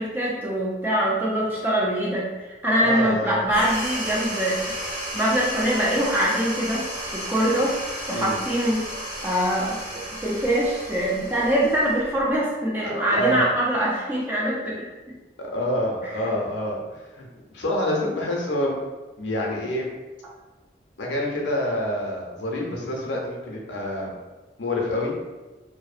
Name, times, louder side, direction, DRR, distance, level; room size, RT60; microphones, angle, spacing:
voice 1, 0.0-2.3 2.6-4.8 5.1-6.9 7.1-7.8 8.1-8.9 9.2-14.7 16.0-16.1, equal, 10° right, -6 dB, 0.4 m, -23 dB
voice 2, 2.8-3.4 8.1-8.4 12.8-13.4 15.4-17.3 17.5-18.8 19.2-19.9 21.0-24.1 24.6-25.1, left 1 dB, 80° left, -1 dB, 0.5 m, -27 dB
sound 1, 3.5-12.4, equal, 55° right, 1.2 m, -33 dB
2.6 x 2.0 x 2.4 m, 1.2 s
head